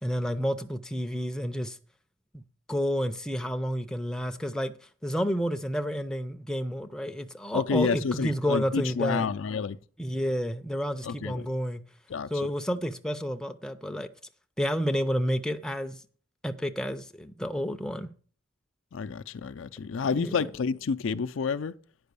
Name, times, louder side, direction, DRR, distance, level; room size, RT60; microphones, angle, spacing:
voice 1, 0.0-1.8 2.3-2.4 2.7-4.7 5.0-9.3 10.0-11.8 12.3-14.1 14.6-16.0 16.4-18.1 20.2-20.5, equal, 5° left, 0.5 m, -30 dB
voice 2, 7.5-9.8 11.0-11.4 12.1-12.5 18.9-21.7, left 5 dB, 75° left, 0.5 m, -29 dB
9.4 x 5.5 x 6.8 m
head